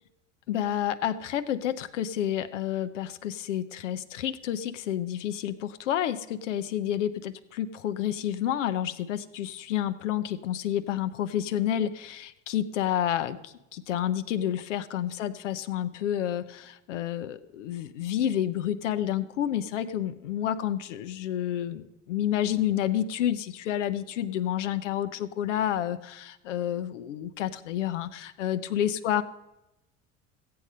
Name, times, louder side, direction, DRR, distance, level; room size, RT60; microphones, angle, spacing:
voice 1, 0.5-29.2, left 11 dB, 70° left, 12 dB, 0.8 m, -29 dB
15.0 x 8.5 x 5.3 m, 0.93 s
figure-of-eight pair, 70°, 38 cm